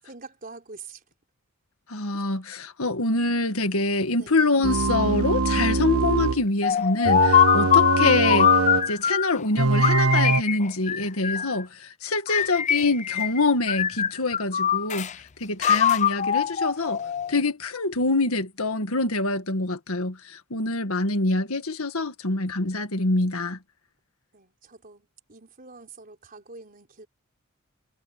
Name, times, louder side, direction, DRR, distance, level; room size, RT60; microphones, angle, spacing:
voice 1, 0.0-1.0 2.1-2.2 4.2-4.4 24.3-27.1, right 4 dB, 40° right, 4.4 m, -45 dB
voice 2, 1.9-8.6 8.9-15.1 15.4-17.0 17.3-23.6, left 2 dB, 70° left, 1.8 m, -25 dB
sound 1, 4.6-6.4 7.0-8.9 9.6-10.4, right 3 dB, 70° right, 1.4 m, -23 dB
sound 2, 6.6-9.4 9.8-11.6 12.3-13.4 13.7-15.1 15.6-17.4, left 9 dB, 30° left, 0.5 m, -22 dB
head